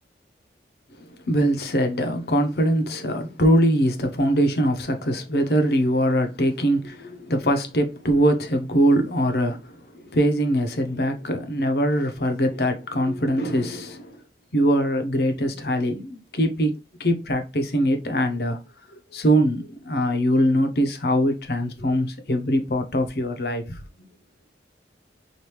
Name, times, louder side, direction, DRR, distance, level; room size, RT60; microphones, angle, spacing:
voice 1, 1.1-14.2 14.5-16.7 17.0-18.6 18.9-24.1, equal, 60° left, 0.8 m, -22 dB
4.9 x 2.6 x 3.0 m
head